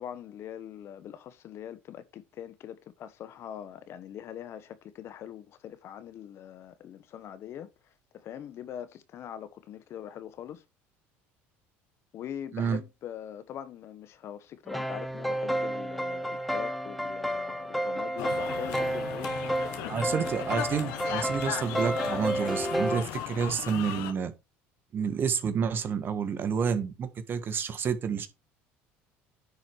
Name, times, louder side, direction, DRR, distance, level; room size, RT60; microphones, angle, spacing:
voice 1, 0.0-7.7 8.1-10.6 12.1-20.3, left 10 dB, 55° left, 1.1 m, -42 dB
sound 1, 14.7-23.0, right 1 dB, ahead, 0.8 m, -31 dB
sound 2, 18.2-24.1, left 11 dB, 80° left, 1.4 m, -37 dB
voice 2, 19.9-24.3 24.9-28.3, right 6 dB, 40° right, 1.6 m, -29 dB
10.0 x 4.7 x 4.6 m
supercardioid pair, 100°, 5 cm